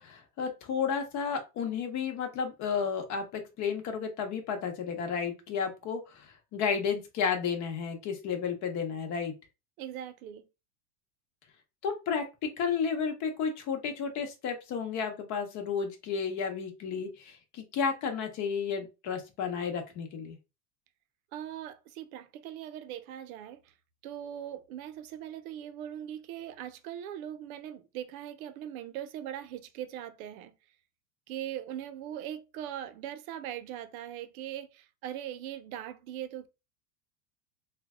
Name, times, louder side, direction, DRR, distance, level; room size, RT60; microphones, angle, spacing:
voice 1, 0.0-9.3 11.8-20.4, left 6 dB, 40° left, 0.9 m, -32 dB
voice 2, 9.8-10.5 21.3-23.7 24.0-30.5 31.3-36.5, right 11 dB, 75° right, 0.6 m, -40 dB
3.2 x 2.2 x 3.5 m
supercardioid pair, 145°, 43 cm